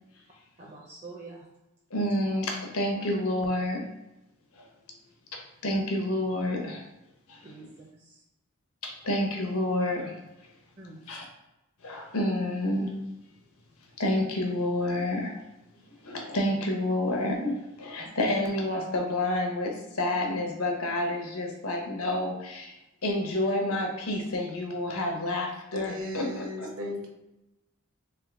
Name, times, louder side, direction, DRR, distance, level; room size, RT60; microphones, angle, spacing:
voice 1, 0.6-1.5 7.4-8.2 10.8-11.0 18.0-18.1 26.2-26.3, right 2 dB, 35° right, -3 dB, 0.6 m, -46 dB
voice 2, 1.9-3.8 4.6-4.7 5.3-6.8 7.3-7.4 8.8-10.2 11.1-11.2 11.8-12.9 14.0-15.4 16.0-22.8 23.0-26.7, left 1 dB, 90° left, 2 dB, 1.0 m, -29 dB
voice 3, 25.7-27.1, left 1 dB, 65° right, 1 dB, 0.8 m, -36 dB
3.6 x 3.5 x 3.6 m, 0.94 s
head